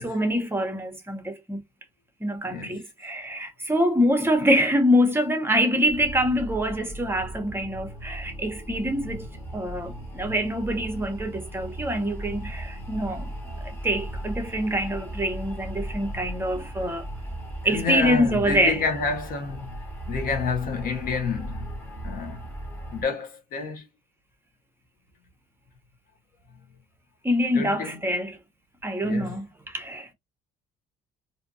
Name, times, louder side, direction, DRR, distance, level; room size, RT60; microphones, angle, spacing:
voice 1, 0.0-1.6 2.2-9.3 9.5-13.3 13.8-17.1 17.6-18.8 27.2-28.4 28.8-30.1, equal, 15° right, 0.8 m, -25 dB
voice 2, 2.4-2.8 17.6-19.7 20.1-21.7 22.0-22.5 22.9-23.8 27.5-28.0 29.0-29.3, left 4 dB, 55° left, 0.9 m, -29 dB
sound 1, 5.9-23.0, right 1 dB, 15° left, 1.2 m, -37 dB
2.7 x 2.4 x 2.6 m
cardioid pair, 110°, 17 cm